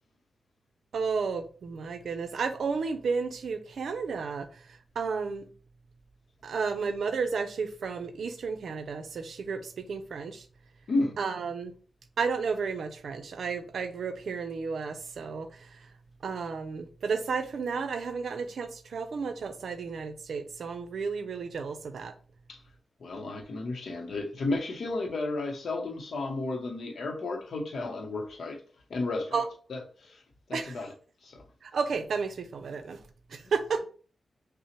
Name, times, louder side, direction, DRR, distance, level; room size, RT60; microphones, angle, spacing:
voice 1, 0.9-4.5 5.0-5.4 6.4-10.4 11.2-11.7 12.2-15.8 16.2-22.1 29.3-29.4 30.5-30.7 31.6-33.0 33.3-33.8, right 5 dB, 75° right, 0.5 m, -32 dB
voice 2, 23.0-28.6 28.9-29.4 29.7-30.2 30.5-30.9 31.2-31.5, left 2 dB, 65° left, 0.7 m, -33 dB
5.6 x 2.0 x 2.9 m
wide cardioid pair, 180°, 0 cm